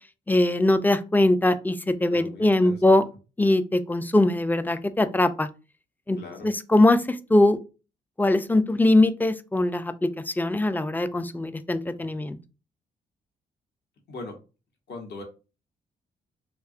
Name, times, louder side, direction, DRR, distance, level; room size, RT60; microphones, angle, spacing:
voice 1, 0.3-3.0 3.4-5.5 6.1-6.2 6.4-7.6 8.2-12.4, left 2 dB, 10° left, 0.3 m, -21 dB
voice 2, 2.1-2.8 6.2-6.5 14.1-14.3 14.9-15.2, left 3 dB, 60° left, 0.8 m, -39 dB
2.6 x 2.3 x 2.4 m
hypercardioid pair, 40°, 19 cm